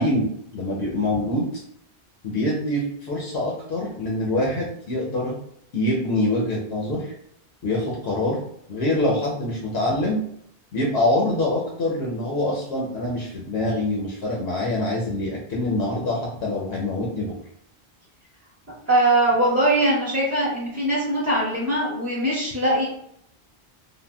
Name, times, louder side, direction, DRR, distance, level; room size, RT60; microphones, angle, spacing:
voice 1, 0.0-1.6 2.2-5.4 5.7-7.1 7.6-8.4 8.7-10.2 10.7-17.3, left 1 dB, 70° left, -3 dB, 0.8 m, -25 dB
voice 2, 18.9-22.8, right 1 dB, 15° right, -11 dB, 0.7 m, -21 dB
3.5 x 2.1 x 2.2 m, 0.72 s
omnidirectional pair, 1.1 m